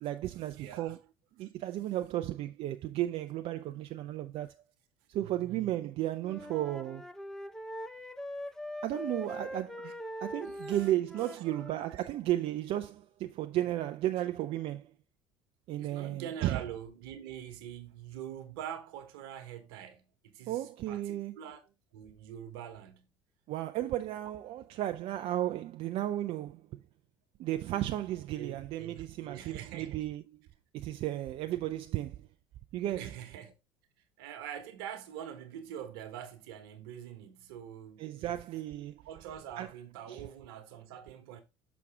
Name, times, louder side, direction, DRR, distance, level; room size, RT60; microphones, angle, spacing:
voice 1, 0.0-1.0 1.4-4.5 5.1-7.1 8.8-14.9 15.7-16.6 20.5-21.4 23.5-26.7 27.4-30.2 30.7-32.3 32.7-33.1 38.0-39.0 39.6-39.7 40.1-40.2, right 13 dB, 50° right, 0.4 m, -34 dB
voice 2, 0.6-1.0 1.4-1.5 5.2-5.7 9.8-9.9 10.4-10.9 11.2-12.1 15.8-21.6 21.9-23.1 28.4-30.1 32.9-33.5 34.2-38.4 39.0-41.4, right 9 dB, 70° right, 1.2 m, -45 dB
Wind instrument woodwind instrument, 6.2-11.9, equal, 5° left, 0.6 m, -42 dB
6.1 x 5.9 x 3.4 m
hypercardioid pair, 60°, 13 cm